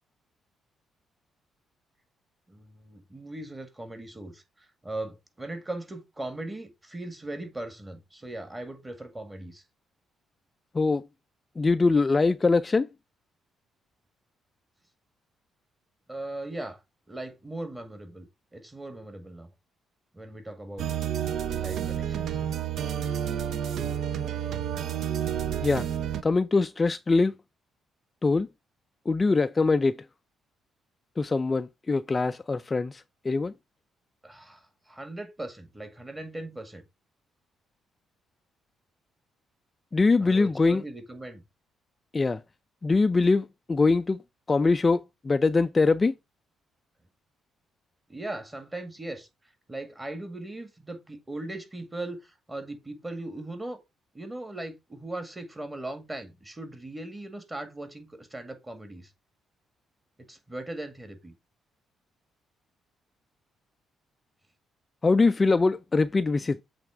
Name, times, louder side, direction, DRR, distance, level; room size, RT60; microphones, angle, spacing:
voice 1, 2.5-9.6 16.1-16.8 17.1-18.3 18.5-19.5 20.1-21.0 21.5-22.4 34.2-36.9 40.2-41.4 48.1-53.8 54.1-59.1 60.3-61.3, right 2 dB, 15° right, 2.0 m, -39 dB
voice 2, 10.7-11.1 11.6-12.9 25.6-25.9 26.2-27.3 28.2-28.5 29.1-30.0 31.2-33.5 39.9-40.8 42.1-42.4 42.8-44.2 44.5-46.1 65.0-66.6, left 3 dB, 25° left, 0.3 m, -23 dB
sound 1, 20.8-26.2, right 9 dB, 70° right, 0.6 m, -30 dB
7.8 x 3.5 x 4.6 m
cardioid pair, 90°, 0 cm